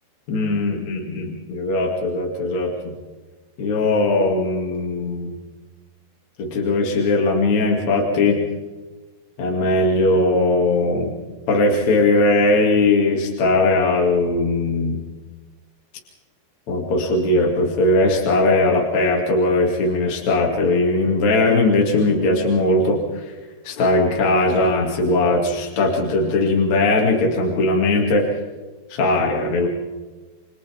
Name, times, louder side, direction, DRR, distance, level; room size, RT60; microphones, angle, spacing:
voice 1, 0.3-3.0 3.6-5.4 6.4-8.4 9.4-11.1 11.5-15.0 16.7-23.3 23.6-28.2 28.9-29.7, left 2 dB, 45° left, -1 dB, 3.7 m, -19 dB
28.5 x 25.5 x 3.7 m, 1.2 s
omnidirectional pair, 4.9 m